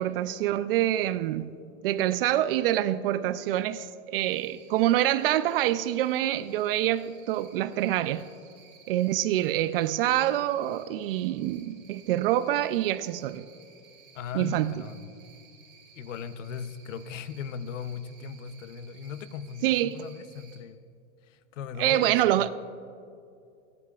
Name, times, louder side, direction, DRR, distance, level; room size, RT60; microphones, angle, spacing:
voice 1, 0.0-1.5 1.8-8.2 8.9-13.5 14.3-14.8 19.6-20.0 21.8-22.5, right 13 dB, 50° right, 0.5 m, -26 dB
Cricket, 4.2-20.6, right 6 dB, 25° right, 2.8 m, -56 dB
voice 2, 14.1-15.2 15.9-20.8 21.3-22.5, left 7 dB, 85° left, 0.8 m, -38 dB
27.5 x 11.0 x 2.4 m
supercardioid pair, 165°, 37 cm